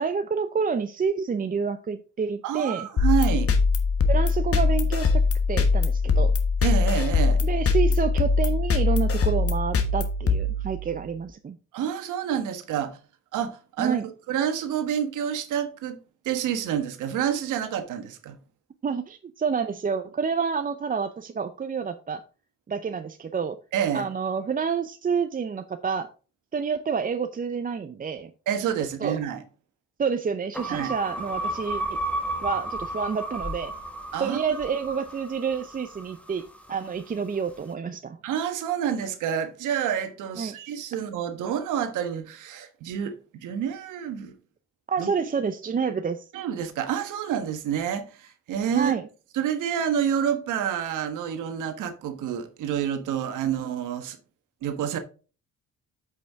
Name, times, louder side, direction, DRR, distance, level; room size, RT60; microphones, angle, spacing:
voice 1, 0.0-2.9 4.1-5.2 5.5-6.3 7.4-11.6 13.8-14.1 18.8-22.2 22.7-23.6 23.9-26.1 26.5-28.3 29.0-29.2 30.0-31.8 32.4-33.7 34.2-38.2 40.4-40.6 44.9-46.3 48.7-49.0, right 6 dB, 30° right, 0.5 m, -28 dB
voice 2, 2.4-3.5 6.6-7.4 11.7-13.0 13.3-14.0 14.3-16.0 16.2-18.4 23.7-24.1 28.5-29.4 30.7-30.9 34.1-34.4 38.2-44.4 45.0-45.1 46.3-48.9 49.3-54.2 54.6-55.0, right 9 dB, 85° right, 1.3 m, -28 dB
sound 1, 3.0-11.1, left 4 dB, 50° left, 1.3 m, -22 dB
sound 2, 30.5-36.9, right 1 dB, 5° left, 1.5 m, -33 dB
8.1 x 5.6 x 3.5 m
cardioid pair, 90°, 30 cm